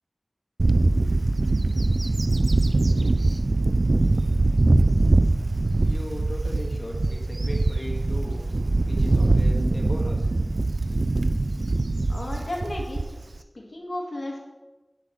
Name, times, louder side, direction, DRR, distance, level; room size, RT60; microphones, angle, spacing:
Bird / Wind, 0.6-13.4, right 2 dB, 75° right, 0.4 m, -22 dB
voice 1, 5.8-8.5 8.9-10.4, left 1 dB, 50° left, -1 dB, 2.1 m, -37 dB
voice 2, 12.1-13.0 13.5-14.4, left 1 dB, 90° left, -1 dB, 1.8 m, -33 dB
8.5 x 5.8 x 6.4 m, 1.1 s
wide cardioid pair, 50°, 0 cm